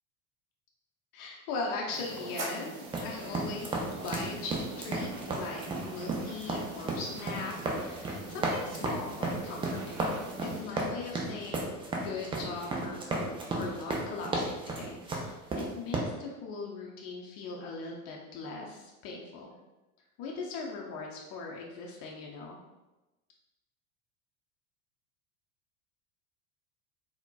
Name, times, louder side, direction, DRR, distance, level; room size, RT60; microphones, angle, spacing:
voice 1, 1.1-10.1 10.4-11.6 12.0-19.5 20.2-22.6, left 4 dB, 55° left, -2 dB, 0.6 m, -40 dB
sound 1, 1.9-10.6, right 3 dB, 75° right, 0.7 m, -43 dB
sound 2, 2.9-16.0, right 2 dB, 15° right, 0.3 m, -34 dB
3.8 x 2.1 x 2.2 m, 1.0 s
hypercardioid pair, 75°, 43 cm